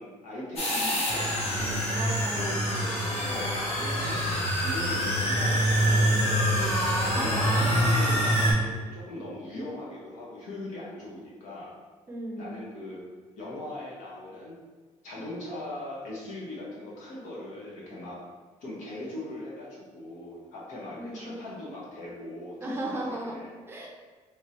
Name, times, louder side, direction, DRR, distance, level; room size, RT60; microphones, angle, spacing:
voice 1, 0.0-1.8 2.3-2.9 3.2-4.2 4.6-6.6 7.1-11.7 12.4-13.0 13.4-14.6 15.0-18.2 18.6-22.6 22.8-23.5, left 1 dB, 75° left, -6 dB, 1.2 m, -39 dB
sound 1, 0.6-8.5, equal, 55° left, 0.8 m, -25 dB
sound 2, 1.6-7.8, left 2 dB, 75° right, 0.4 m, -43 dB
voice 2, 1.9-2.7 7.1-7.5 12.1-12.6 21.0-21.3 22.6-23.4 23.7-23.9, right 1 dB, 20° right, -1 dB, 0.5 m, -36 dB
3.6 x 3.1 x 2.9 m, 1.4 s
cardioid pair, 170°, 13 cm